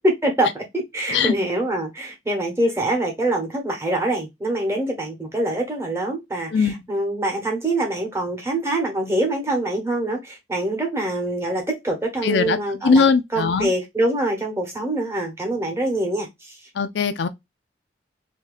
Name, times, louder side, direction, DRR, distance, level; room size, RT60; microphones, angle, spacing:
voice 1, 0.0-13.1 13.3-16.6, right 1 dB, 15° right, 1.1 m, -24 dB
voice 2, 12.2-12.6 12.8-13.7 16.8-17.3, left 5 dB, 70° left, 0.4 m, -19 dB
2.8 x 2.8 x 3.8 m
head